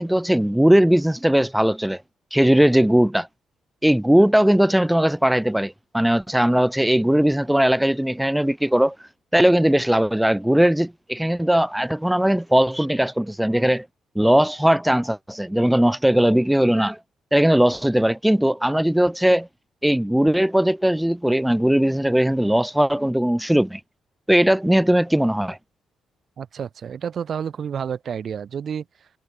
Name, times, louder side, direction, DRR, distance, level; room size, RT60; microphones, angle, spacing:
voice 1, 0.0-2.0 2.3-3.3 3.8-13.9 14.1-17.0 17.3-19.5 19.8-23.8 24.3-25.6, equal, 5° right, 1.7 m, -19 dB
voice 2, 26.4-28.8, right 7 dB, 50° right, 7.4 m, -30 dB
cardioid pair, 105°, 0 cm